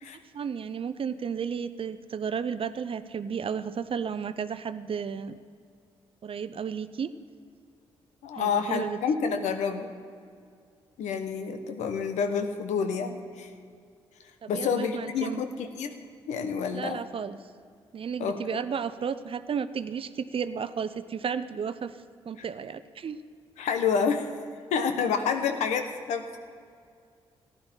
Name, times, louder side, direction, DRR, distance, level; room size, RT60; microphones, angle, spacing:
voice 1, 0.3-5.4 6.2-7.1 8.3-9.0 14.4-15.4 16.7-17.4 17.9-22.0 22.3-23.2, right 7 dB, 50° right, 13 dB, 0.6 m, -33 dB
voice 2, 8.2-9.9 11.0-13.5 14.5-15.9 16.3-17.0 18.2-18.6 23.6-24.3 24.7-26.3, left 6 dB, 75° left, 7 dB, 1.0 m, -28 dB
15.0 x 10.5 x 4.5 m, 2.2 s
hypercardioid pair, 50°, 12 cm